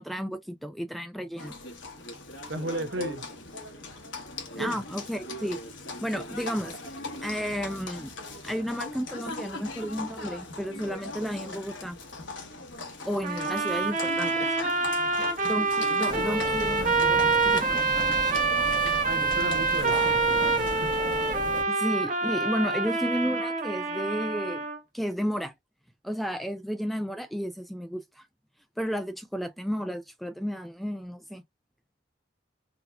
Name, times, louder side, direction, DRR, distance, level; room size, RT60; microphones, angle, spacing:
voice 1, 0.0-1.5 4.6-5.6 6.0-6.8 7.2-8.1 8.4-12.0 13.0-14.5 15.4-17.9 21.7-24.6 24.9-25.5 26.0-28.2 28.8-31.4, equal, ahead, 0.3 m, -32 dB
Livestock farm animals working animals, 1.4-21.3, left 2 dB, 80° left, 1.2 m, -40 dB
voice 2, 2.5-3.2 4.6-4.8 15.0-15.3 19.0-21.0, right 1 dB, 65° right, 0.8 m, -35 dB
sound 1, 13.2-24.8, right 3 dB, 40° right, 1.2 m, -26 dB
sound 2, 16.1-21.6, right 1 dB, 25° right, 1.1 m, -37 dB
3.9 x 2.8 x 2.2 m
head